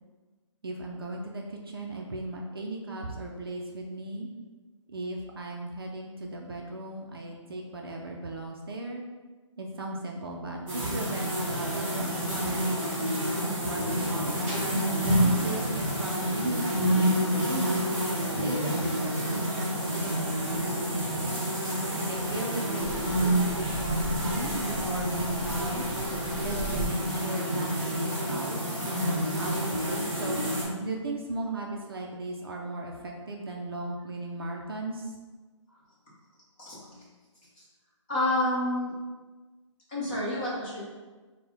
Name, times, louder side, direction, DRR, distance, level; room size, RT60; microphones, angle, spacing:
voice 1, 0.6-4.3 4.9-9.0 9.6-12.2 12.4-12.9 13.6-14.5 14.9-17.1 17.4-17.8 18.4-21.4 22.1-25.9 26.4-28.6 29.0-30.4 30.8-35.1, right 2 dB, 50° right, 0 dB, 0.4 m, -36 dB
sound 1, 10.7-30.6, equal, 15° right, 1.3 m, -28 dB
voice 2, 36.6-37.0 37.6-37.7 38.1-38.9 39.9-40.9, left 1 dB, 15° left, -9 dB, 0.9 m, -29 dB
3.9 x 2.1 x 3.9 m, 1.3 s
hypercardioid pair, 170°, 16 cm